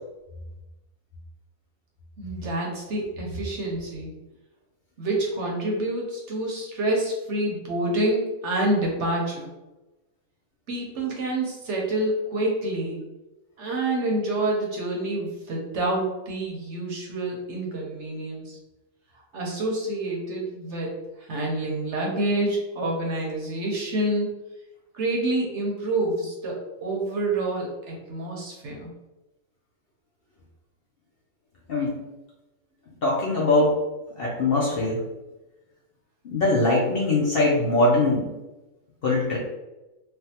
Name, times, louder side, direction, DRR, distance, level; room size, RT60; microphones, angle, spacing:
voice 1, 2.2-4.1 5.0-9.5 10.7-13.1 13.6-18.6 19.3-24.3 24.9-28.9, right 1 dB, 60° right, -1 dB, 0.9 m, -27 dB
voice 2, 33.0-33.8 34.2-35.0 36.2-38.3 39.0-39.4, left 2 dB, 55° left, -4 dB, 0.7 m, -22 dB
3.3 x 2.3 x 2.8 m, 1.0 s
omnidirectional pair, 1.5 m